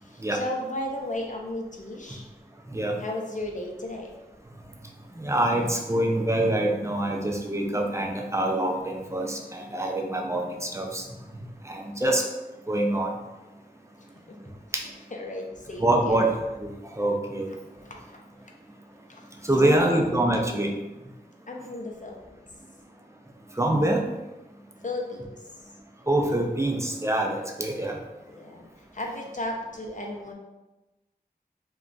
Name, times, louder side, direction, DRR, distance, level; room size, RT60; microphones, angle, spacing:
voice 1, 0.0-2.3 3.0-4.2 14.3-14.5 14.8-16.3 17.5-17.6 17.8-18.2 19.1-19.2 19.6-20.1 21.5-22.4 24.8-25.4 28.3-30.3, left 1 dB, 50° left, 0 dB, 0.6 m, -35 dB
voice 2, 5.2-11.0 11.7-12.2 12.7-13.1 14.7-14.8 15.8-16.3 16.6-17.5 19.4-20.7 23.6-24.0 26.1-28.0, right 1 dB, 15° right, 1 dB, 0.4 m, -25 dB
2.4 x 2.2 x 3.8 m, 1.1 s
wide cardioid pair, 40°, 17 cm